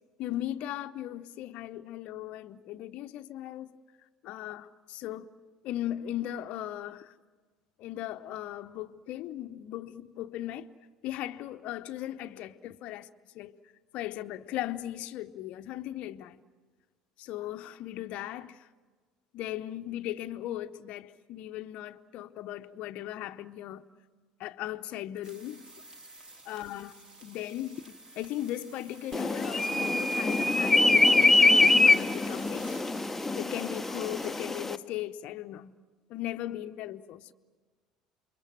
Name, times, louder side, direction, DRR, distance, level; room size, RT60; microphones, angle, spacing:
voice 1, 0.2-3.8 4.2-5.3 5.6-7.1 7.8-10.7 11.0-13.1 13.3-13.6 13.9-16.4 17.2-18.7 19.3-23.8 24.4-25.6 26.5-32.8 33.4-35.7 36.1-37.3, left 13 dB, 55° left, 0.8 m, -38 dB
sound 1, 25.2-34.5, right 2 dB, 30° right, 3.9 m, -51 dB
sound 2, 29.1-34.8, left 2 dB, 10° left, 0.9 m, -24 dB
28.5 x 23.0 x 7.5 m
figure-of-eight pair, 65°, 3 cm